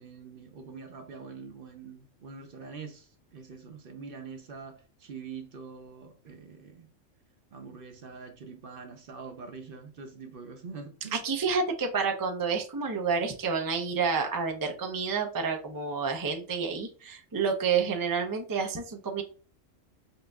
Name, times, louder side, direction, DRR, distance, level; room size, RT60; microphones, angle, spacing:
voice 1, 0.0-6.9 7.5-11.2, right 5 dB, 50° right, 0.7 m, -44 dB
voice 2, 11.1-19.2, right 5 dB, 35° right, 0.3 m, -29 dB
5.5 x 2.6 x 2.3 m
omnidirectional pair, 1.4 m